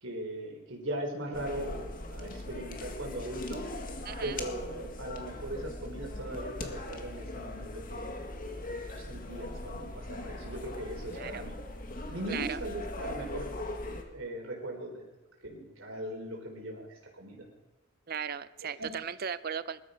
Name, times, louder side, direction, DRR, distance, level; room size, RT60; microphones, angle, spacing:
voice 1, 0.0-3.6 4.2-8.1 8.7-11.6 12.1-13.5 14.1-15.1 15.4-17.5 18.8-18.9, right 1 dB, 80° right, 0 dB, 3.9 m, -39 dB
sound 1, 1.3-14.0, left 2 dB, 45° left, 1.9 m, -40 dB
voice 2, 4.0-4.4 11.1-11.5 12.3-12.6 18.1-19.8, right 7 dB, 50° right, 14 dB, 0.6 m, -37 dB
20.5 x 13.0 x 5.1 m, 1.1 s
head